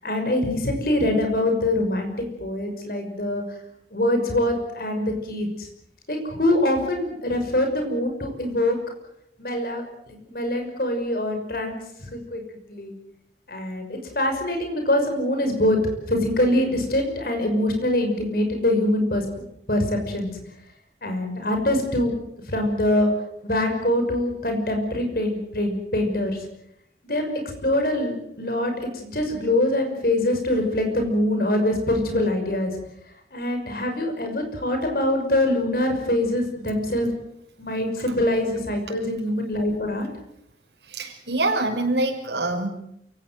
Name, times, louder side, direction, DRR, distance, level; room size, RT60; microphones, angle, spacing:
voice 1, 0.0-2.1 2.4-3.4 3.9-5.5 6.1-8.8 9.4-9.8 10.3-11.8 12.1-12.4 12.7-12.9 13.5-15.8 16.1-19.2 19.7-20.3 21.0-22.1 22.5-23.1 23.4-26.4 27.0-27.3 27.6-32.7 33.3-37.1 37.6-40.1, left 1 dB, 55° left, 4 dB, 6.0 m, -24 dB
voice 2, 40.8-42.7, right 2 dB, 75° right, 1 dB, 5.9 m, -25 dB
28.5 x 17.0 x 7.8 m, 0.78 s
head